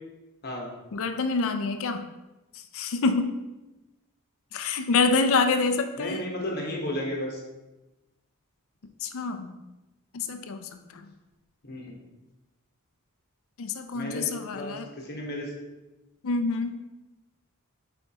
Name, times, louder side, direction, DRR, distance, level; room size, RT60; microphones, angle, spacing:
voice 1, 0.9-2.1 2.7-3.3 4.5-6.2 9.0-9.6 10.1-11.0 13.6-14.9 16.2-16.8, left 4 dB, 65° left, 8 dB, 0.5 m, -26 dB
voice 2, 6.0-7.4 11.6-11.9 13.9-14.3 14.5-15.5, left 1 dB, 45° left, -1 dB, 1.2 m, -33 dB
8.9 x 4.3 x 2.9 m, 1.0 s
head